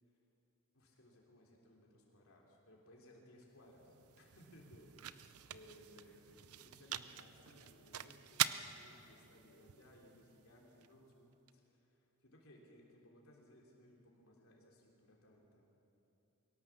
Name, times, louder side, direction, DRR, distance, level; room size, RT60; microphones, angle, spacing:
voice 1, 0.7-15.6, left 1 dB, 70° left, -2 dB, 3.3 m, -62 dB
sound 1, 3.4-11.5, right 11 dB, 90° right, 0.7 m, -44 dB
23.0 x 18.0 x 7.3 m, 2.9 s
head